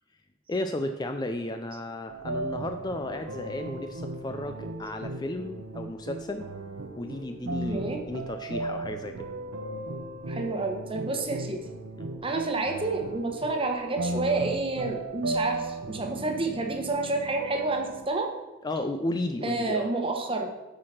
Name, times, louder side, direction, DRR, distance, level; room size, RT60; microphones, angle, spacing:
voice 1, 0.5-6.5 6.9-9.2 12.0-12.1 18.6-19.9, left 1 dB, 20° left, 7 dB, 0.4 m, -34 dB
sound 1, 2.1-18.1, right 2 dB, 85° right, 0.8 m, -36 dB
voice 2, 7.7-8.0 10.3-11.6 12.2-18.3 19.4-20.5, right 3 dB, 25° right, 3 dB, 1.1 m, -29 dB
8.6 x 4.8 x 5.7 m, 1.1 s
head